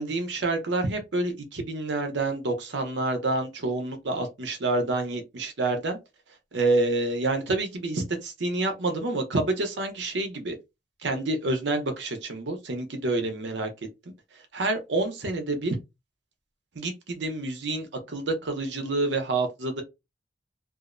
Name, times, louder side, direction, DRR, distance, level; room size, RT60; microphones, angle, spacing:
voice 1, 0.0-6.0 6.5-10.6 11.0-13.7 14.5-15.8 16.8-19.8, right 2 dB, 75° right, 0.7 m, -28 dB
2.5 x 2.0 x 2.5 m
head